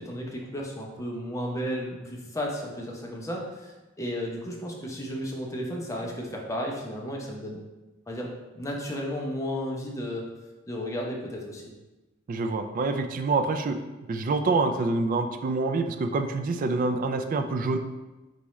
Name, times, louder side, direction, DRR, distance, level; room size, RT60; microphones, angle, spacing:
voice 1, 0.0-7.6 8.1-10.2 10.7-11.7, equal, 15° left, -1 dB, 0.7 m, -33 dB
voice 2, 12.3-13.8 14.1-17.8, right 3 dB, 45° right, 7 dB, 0.3 m, -26 dB
4.1 x 3.5 x 3.1 m, 1.1 s
head